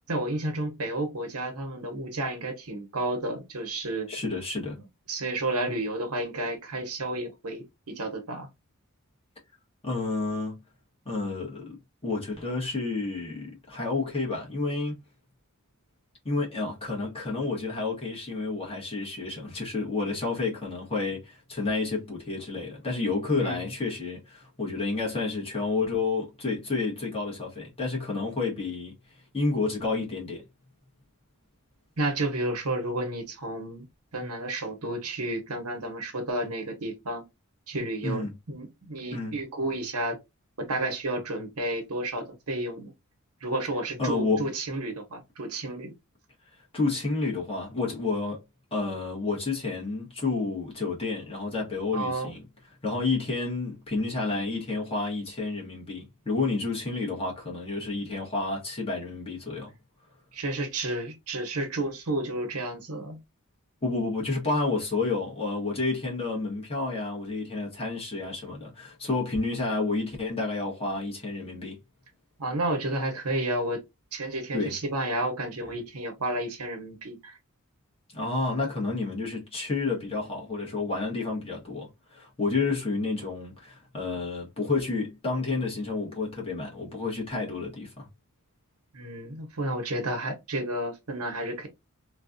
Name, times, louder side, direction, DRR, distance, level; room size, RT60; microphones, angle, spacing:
voice 1, 0.1-4.1 5.1-8.5 23.4-23.7 32.0-33.9 34.1-37.2 37.7-40.2 40.6-42.9 43.4-45.9 51.9-52.3 60.3-63.2 72.4-73.8 74.1-77.4 88.9-91.7, right 2 dB, 85° right, 1.0 m, -31 dB
voice 2, 4.1-4.8 9.8-10.6 11.0-15.0 16.2-28.9 29.3-30.4 38.0-38.3 39.1-39.4 44.0-44.5 46.7-48.4 48.7-52.4 52.8-59.7 63.8-71.8 74.5-74.7 78.1-88.1, left 3 dB, 25° left, 1.3 m, -30 dB
3.1 x 2.3 x 2.5 m
head